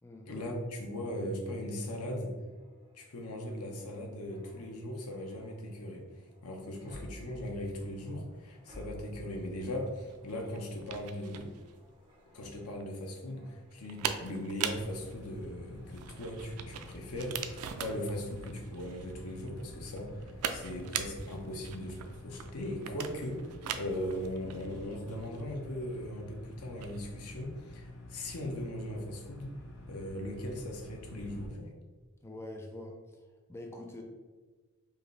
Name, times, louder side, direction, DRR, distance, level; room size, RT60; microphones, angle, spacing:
voice 1, 0.3-2.3 2.9-6.0 6.4-11.5 12.3-23.4 23.8-29.5 29.9-31.7, left 1 dB, 85° left, 1 dB, 0.8 m, -39 dB
sound 1, 2.2-14.5 14.9-15.1, equal, 20° right, 1.0 m, -55 dB
sound 2, 9.7-27.0, right 8 dB, 85° right, 0.4 m, -42 dB
sound 3, 14.7-31.5, left 1 dB, 55° left, 0.9 m, -49 dB
voice 2, 32.2-34.0, left 1 dB, 10° left, 1 dB, 0.4 m, -45 dB
4.7 x 2.6 x 3.2 m, 1.3 s
head